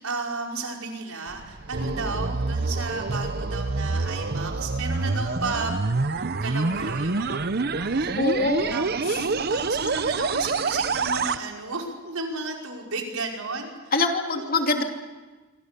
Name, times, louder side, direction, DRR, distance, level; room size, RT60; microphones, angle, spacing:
voice 1, 0.0-5.8 6.2-8.2 8.7-13.7 14.3-14.8, right 3 dB, 85° right, 0 dB, 5.4 m, -33 dB
sound 1, 1.3-11.4, right 3 dB, 50° right, 0.8 m, -27 dB
voice 2, 8.2-8.7 13.9-14.8, left 3 dB, 45° left, 3 dB, 2.9 m, -24 dB
26.5 x 25.5 x 6.9 m, 1.3 s
head